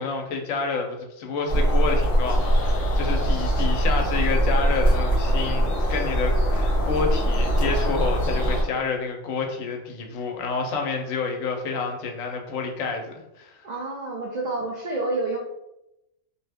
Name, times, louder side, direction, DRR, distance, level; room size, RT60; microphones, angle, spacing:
voice 1, 0.0-13.7, left 4 dB, 80° left, 3 dB, 1.0 m, -29 dB
sound 1, 1.5-8.6, right 1 dB, 50° left, 0.6 m, -22 dB
voice 2, 13.6-15.4, right 2 dB, 75° right, -2 dB, 0.4 m, -28 dB
2.6 x 2.1 x 3.3 m, 0.89 s
omnidirectional pair, 1.4 m